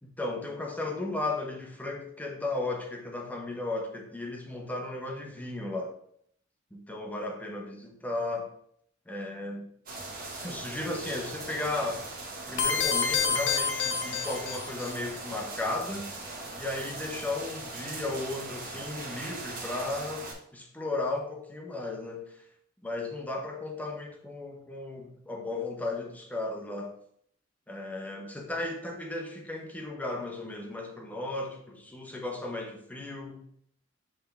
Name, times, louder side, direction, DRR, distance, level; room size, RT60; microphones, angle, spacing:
voice 1, 0.0-5.9 6.7-8.5 9.1-9.7 10.4-12.0 12.5-16.1 16.6-20.3 20.5-22.4 22.8-27.0 27.7-33.4, left 2 dB, 10° left, 1 dB, 1.0 m, -35 dB
sound 1, 9.9-20.3, right 2 dB, 45° right, 1.7 m, -40 dB
sound 2, 12.6-14.9, left 6 dB, 65° left, 0.8 m, -28 dB
7.9 x 3.7 x 3.5 m, 0.68 s
head